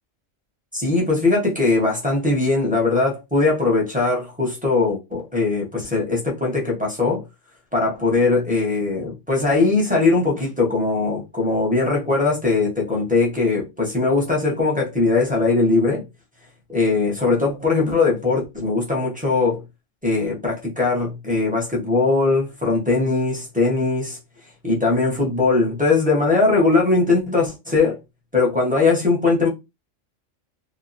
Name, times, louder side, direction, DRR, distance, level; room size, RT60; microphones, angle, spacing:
voice 1, 0.7-7.2 7.7-16.0 16.7-19.6 20.0-24.2 24.6-28.0 28.3-29.5, left 3 dB, 10° right, 0.6 m, -20 dB
2.9 x 2.1 x 2.5 m
omnidirectional pair, 1.4 m